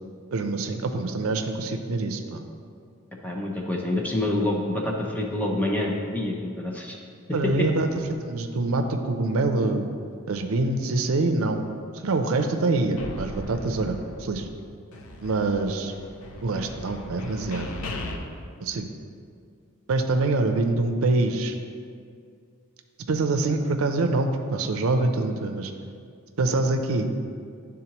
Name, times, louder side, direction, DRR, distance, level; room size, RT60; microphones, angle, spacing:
voice 1, 0.3-2.4 7.3-9.9 10.3-11.6 12.0-14.5 15.2-15.9 16.4-17.7 18.6-18.9 19.9-21.6 23.1-25.7 26.4-27.1, right 2 dB, 75° right, 6 dB, 0.5 m, -25 dB
voice 2, 3.2-7.0 7.3-7.5, left 1 dB, 5° left, -1 dB, 0.6 m, -27 dB
sound 1, 13.0-14.6 14.9-18.2, left 2 dB, 80° left, 0.6 m, -38 dB
10.5 x 3.7 x 2.9 m, 2.3 s
head